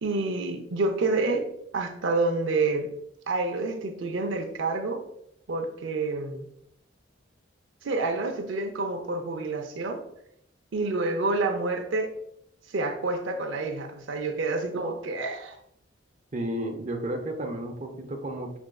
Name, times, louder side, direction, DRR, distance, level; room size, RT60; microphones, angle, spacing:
voice 1, 0.0-1.5 1.7-2.9 3.3-5.0 5.5-6.5 7.8-10.0 10.7-12.1 12.7-15.6, right 3 dB, 75° right, 4 dB, 0.5 m, -28 dB
voice 2, 16.3-18.6, right 1 dB, 40° right, 1 dB, 0.6 m, -32 dB
6.2 x 3.4 x 2.3 m, 0.76 s
head